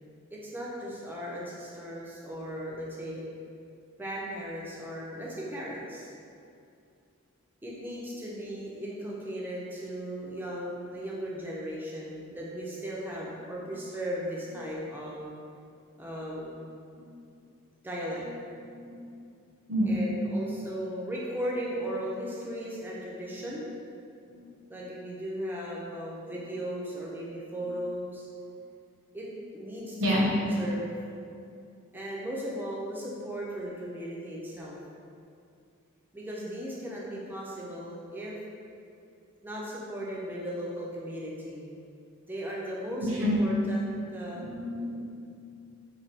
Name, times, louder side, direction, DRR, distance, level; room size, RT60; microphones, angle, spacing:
voice 1, 0.3-3.2 4.0-6.1 7.6-15.3 16.0-16.7 17.8-18.2 19.8-23.6 24.7-28.3 29.1-30.2 30.5-30.9 31.9-34.8 36.1-38.3 39.4-41.7 42.3-44.4, equal, 10° right, -5 dB, 0.3 m, -37 dB
voice 2, 18.6-19.1 19.7-20.0 23.4-23.5 24.3-24.5 30.0-30.3 43.0-43.4 44.3-45.1, left 1 dB, 60° right, -4 dB, 0.6 m, -29 dB
3.2 x 2.2 x 2.6 m, 2.5 s
head